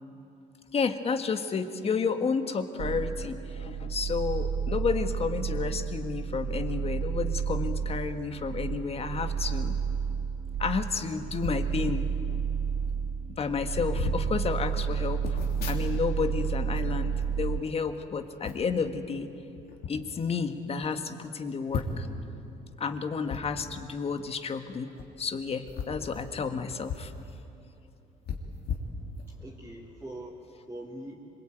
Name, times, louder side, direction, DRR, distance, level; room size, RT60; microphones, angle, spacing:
voice 1, 0.7-9.8 10.6-12.4 13.4-15.4 15.7-19.3 19.9-22.1 22.8-24.9 25.2-27.1, left 5 dB, 35° left, 8 dB, 1.7 m, -31 dB
sound 1, 2.8-17.6, right 7 dB, 40° right, 0.5 m, -31 dB
sound 2, 11.4-11.7 12.5-12.6 12.8-13.1 13.7-14.2 15.2-16.3 16.6-17.9 18.4-18.8 19.5-19.9 20.5-20.6 20.8-20.9 21.7-22.2 23.3-23.4 24.9-25.1 25.6-27.1 27.5-27.6 28.2-29.5 29.9-30.1, left 6 dB, 70° left, 3.4 m, -37 dB
voice 2, 29.3-31.2, right 1 dB, 10° right, -4 dB, 3.1 m, -43 dB
26.0 x 22.0 x 9.2 m, 2.9 s
cardioid pair, 110°, 17 cm